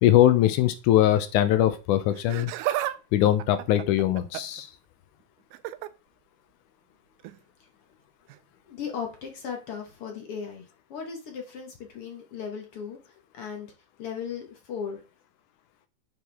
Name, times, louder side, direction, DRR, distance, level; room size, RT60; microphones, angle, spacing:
voice 1, 0.0-2.5 3.1-4.7, left 12 dB, 80° left, 10 dB, 2.0 m, -21 dB
Laughter, 2.1-3.0 3.3-4.6 5.5-5.9 7.2-7.4 8.3-8.4, right 14 dB, 85° right, 2.1 m, -32 dB
voice 2, 8.7-10.6 10.9-13.0 13.3-13.7 14.0-15.0, left 6 dB, 55° left, 2 dB, 1.8 m, -36 dB
9.3 x 4.6 x 3.4 m, 0.30 s
omnidirectional pair, 3.8 m